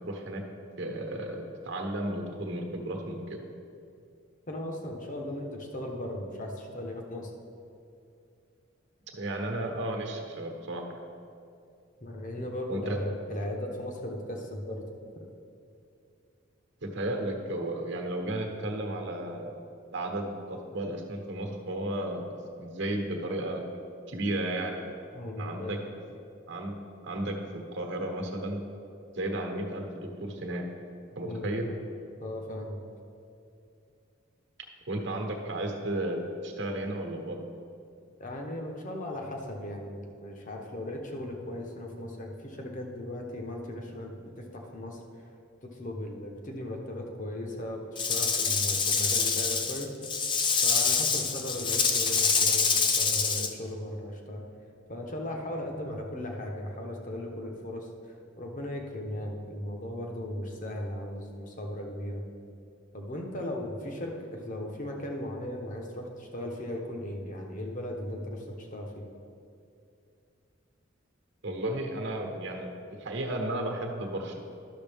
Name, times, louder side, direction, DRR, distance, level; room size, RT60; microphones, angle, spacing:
voice 1, 0.0-0.4 0.8-3.4 9.2-10.8 12.7-13.0 16.8-19.5 19.9-23.6 24.1-24.8 25.4-25.8 26.5-26.8 27.0-28.6 29.1-30.7 31.1-31.7 34.9-37.4 71.4-72.7 73.0-74.4, right 1 dB, 60° right, 2 dB, 1.1 m, -33 dB
voice 2, 4.5-7.3 12.0-14.8 15.1-15.2 25.1-25.8 31.2-31.8 32.2-32.8 38.2-45.0 45.6-49.9 50.6-54.4 54.9-57.9 58.4-62.2 62.9-69.0, left 1 dB, 40° left, 1 dB, 1.0 m, -37 dB
Rattle / Rattle (instrument), 48.0-53.5, left 5 dB, 25° left, 0.4 m, -26 dB
12.0 x 6.4 x 3.5 m, 2.5 s
head